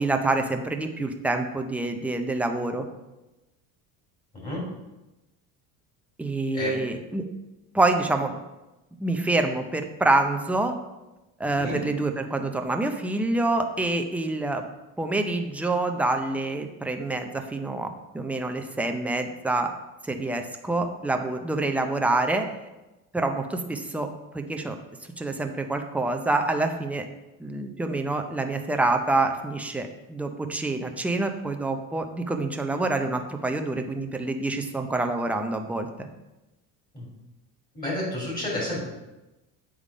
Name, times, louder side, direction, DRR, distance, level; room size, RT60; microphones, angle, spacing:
voice 1, 0.0-2.9 6.2-7.2 7.7-8.4 9.0-10.7 11.4-14.6 15.0-19.7 20.1-22.5 23.1-24.1 24.3-24.8 25.2-27.0 27.4-35.9, right 2 dB, 5° right, 4 dB, 0.5 m, -26 dB
voice 2, 37.7-38.9, left 1 dB, 25° left, -4 dB, 2.7 m, -30 dB
8.2 x 3.7 x 4.9 m, 1.0 s
cardioid pair, 125°, 37 cm